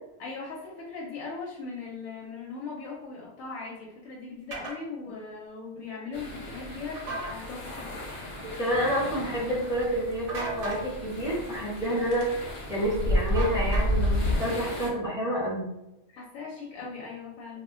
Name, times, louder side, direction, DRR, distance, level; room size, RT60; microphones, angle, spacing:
voice 1, 0.2-7.9 16.1-17.6, left 4 dB, 90° left, -3 dB, 1.0 m, -39 dB
sound 1, 4.5-4.8 7.0-7.3 10.3-10.8 13.4-14.1, right 2 dB, 50° right, 0.8 m, -35 dB
sound 2, 6.1-14.9, left 1 dB, 50° left, 0.3 m, -40 dB
voice 2, 8.4-15.6, equal, 5° right, -8 dB, 0.8 m, -29 dB
sound 3, 12.1-12.3 12.8-14.4, equal, 65° left, 1.0 m, -25 dB
2.3 x 2.1 x 3.6 m, 0.90 s
omnidirectional pair, 1.4 m